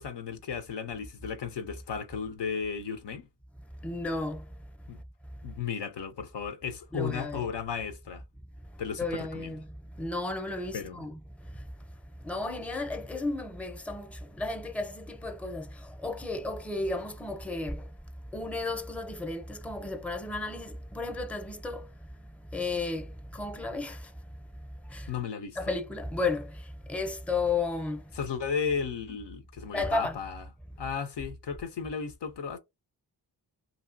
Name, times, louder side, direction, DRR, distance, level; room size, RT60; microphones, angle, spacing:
voice 1, 0.0-3.3 4.9-5.0 5.4-8.2 8.8-9.5 10.7-11.0 25.1-25.6 28.1-30.4 30.8-32.6, left 6 dB, 80° left, 0.6 m, -34 dB
voice 2, 3.8-4.4 6.9-7.5 9.0-9.7 10.0-11.2 11.5-11.7 12.2-17.9 18.3-21.9 22.5-24.1 24.9-25.1 25.6-28.0 29.7-30.2, left 3 dB, 5° left, 0.6 m, -33 dB
2.7 x 2.7 x 2.5 m
cardioid pair, 45°, 41 cm